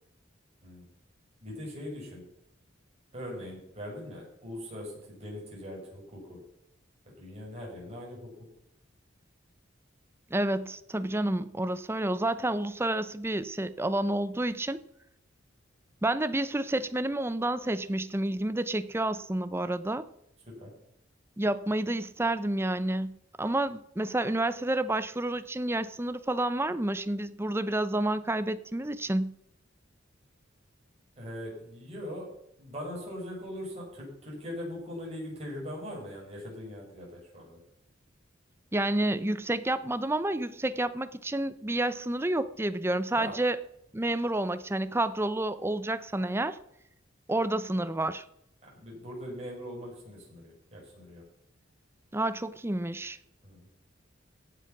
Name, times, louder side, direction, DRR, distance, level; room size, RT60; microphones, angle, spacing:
voice 1, 1.4-2.2 3.1-6.4 7.2-8.3 20.6-20.7 31.2-32.3 32.6-37.6 43.1-43.3 48.7-51.2 53.4-53.7, equal, 35° right, -3 dB, 6.7 m, -41 dB
voice 2, 10.3-14.8 16.0-20.0 21.4-29.3 38.7-43.6 43.9-46.6 47.3-48.2 52.1-53.2, right 1 dB, 15° right, 13 dB, 0.6 m, -29 dB
16.0 x 7.4 x 6.0 m, 0.77 s
head